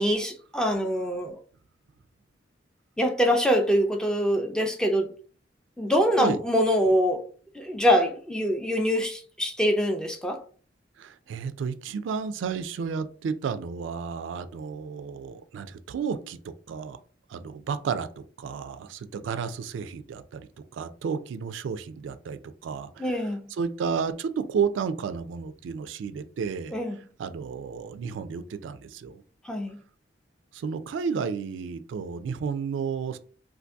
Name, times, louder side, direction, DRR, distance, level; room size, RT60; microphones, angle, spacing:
voice 1, 0.0-1.4 3.0-5.1 5.8-7.2 7.6-10.4 23.0-23.4 26.7-27.0 29.5-29.8, equal, 5° left, 0.3 m, -24 dB
voice 2, 11.0-17.0 17.3-20.5 20.7-23.2 23.5-26.8 27.2-29.2 30.5-33.2, right 6 dB, 80° right, 0.3 m, -32 dB
2.6 x 2.5 x 3.4 m
head